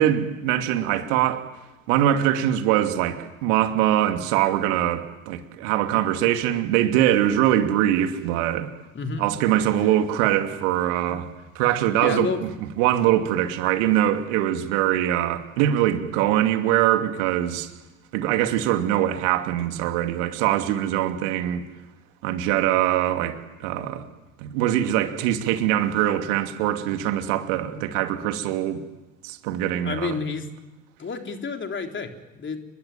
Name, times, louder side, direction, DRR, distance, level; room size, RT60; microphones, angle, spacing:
voice 1, 0.0-1.4 1.9-8.7 9.2-11.3 11.5-12.5 12.8-17.7 18.1-21.6 22.2-24.0 24.4-28.8 29.2-30.2, right 12 dB, 65° right, 2.8 m, -23 dB
voice 2, 8.9-9.3 11.1-11.2 12.0-12.4 29.8-30.5 31.0-32.6, left 4 dB, 30° left, 3.7 m, -30 dB
30.0 x 21.0 x 9.4 m
figure-of-eight pair, 65°, 39 cm